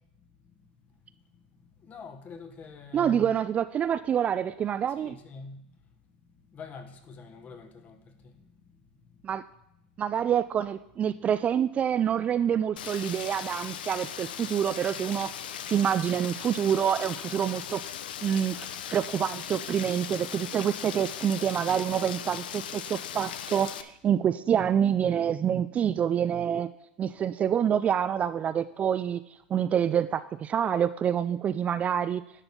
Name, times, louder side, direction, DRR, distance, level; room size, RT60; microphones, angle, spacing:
voice 1, 1.8-3.3 4.9-5.6 6.5-8.0 8.2-8.3, left 4 dB, 30° left, 1.2 m, -44 dB
voice 2, 2.9-5.1 9.2-9.5 10.0-17.8 18.2-26.7 27.0-29.2 29.5-32.2, right 9 dB, 25° right, 0.3 m, -27 dB
Rain, 12.8-23.8, left 9 dB, 75° left, 0.6 m, -38 dB
11.0 x 4.1 x 6.8 m
hypercardioid pair, 105°, 5 cm